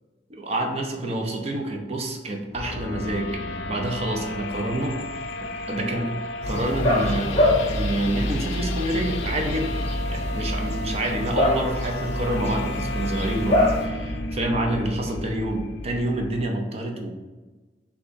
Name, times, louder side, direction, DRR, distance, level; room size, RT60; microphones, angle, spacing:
voice 1, 0.3-5.0 5.4-6.1 6.5-9.8 10.1-17.1, right 1 dB, 35° right, 2 dB, 0.6 m, -28 dB
sound 1, 2.5-16.5, left 2 dB, 70° left, 0.4 m, -33 dB
sound 2, 6.4-13.8, left 1 dB, 35° left, 1.0 m, -25 dB
6.6 x 2.4 x 2.6 m, 1.3 s
head